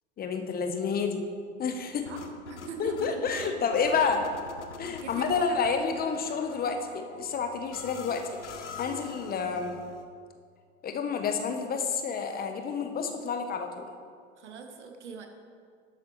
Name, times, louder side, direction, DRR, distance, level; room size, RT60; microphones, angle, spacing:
voice 1, 0.2-1.2 1.6-2.1 2.8-4.2 4.8-9.8 10.8-13.9, left 5 dB, 25° left, 5 dB, 0.9 m, -29 dB
sound 1, 1.7-10.0, left 4 dB, 85° left, 0.9 m, -45 dB
voice 2, 2.1-4.3 4.7-5.5 14.4-15.3, right 5 dB, 80° right, 5 dB, 1.2 m, -42 dB
12.0 x 7.9 x 3.1 m, 2.1 s
hypercardioid pair, 90°, 34 cm